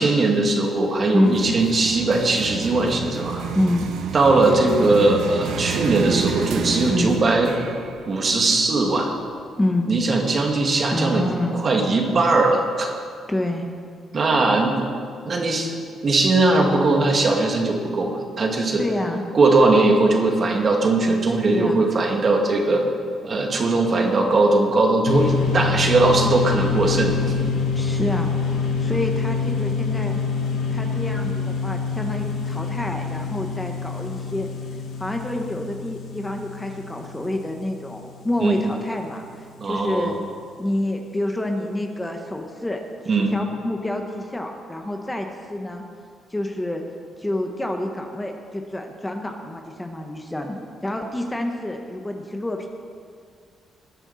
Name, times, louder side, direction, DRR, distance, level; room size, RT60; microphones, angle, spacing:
voice 1, 0.0-3.4 4.1-7.6 8.1-9.1 9.9-12.9 14.1-14.8 15.2-15.7 16.0-18.8 19.3-22.8 23.2-27.2 38.4-38.6 39.6-40.2 43.1-43.4, right 2 dB, 45° right, 1 dB, 2.1 m, -19 dB
sound 1, 1.3-9.2, right 6 dB, 80° right, 1.1 m, -30 dB
voice 2, 3.5-3.9 6.9-7.2 9.6-9.9 10.9-11.6 13.3-13.7 18.8-19.2 21.5-21.9 25.3-25.9 27.7-30.2 30.7-34.5 35.0-39.2 39.6-40.2 40.6-42.8 43.1-45.8 46.3-46.8 47.2-52.7, left 1 dB, 15° left, 3 dB, 1.3 m, -27 dB
sound 2, 25.1-38.6, left 5 dB, 80° left, 1.7 m, -26 dB
19.0 x 9.9 x 4.3 m, 2.2 s
cardioid pair, 90°, 0 cm